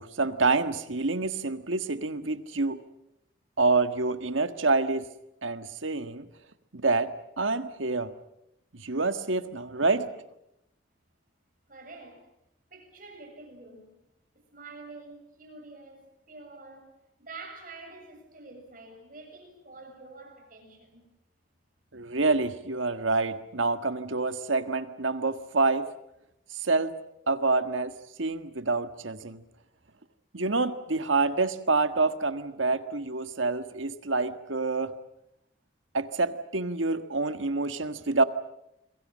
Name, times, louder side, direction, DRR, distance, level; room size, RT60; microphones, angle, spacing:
voice 1, 0.0-2.8 3.6-5.1 5.4-6.3 6.7-7.1 7.4-8.1 8.7-10.1 21.9-25.9 26.6-26.9 27.3-27.9 28.2-29.4 30.3-34.9 35.9-38.2, right 3 dB, 90° right, 10 dB, 1.6 m, -27 dB
voice 2, 11.7-12.3 12.7-14.0 14.3-21.0, right 3 dB, 45° right, 3 dB, 7.2 m, -47 dB
28.5 x 22.0 x 7.5 m, 0.82 s
head